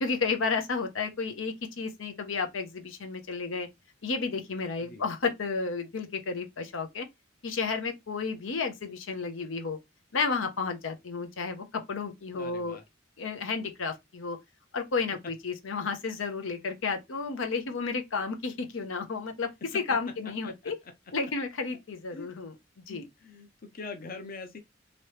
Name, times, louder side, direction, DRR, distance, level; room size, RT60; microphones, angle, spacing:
voice 1, 0.0-3.7 4.0-7.1 7.4-9.8 10.1-12.8 13.2-14.4 14.7-19.5 19.7-20.7 21.1-22.5 22.9-23.0, left 4 dB, 85° left, 0.7 m, -32 dB
voice 2, 12.3-12.8 16.4-16.7 19.7-20.0 20.4-20.9 22.1-22.3 22.9-24.6, left 4 dB, 50° left, 0.6 m, -44 dB
3.0 x 2.9 x 3.1 m
head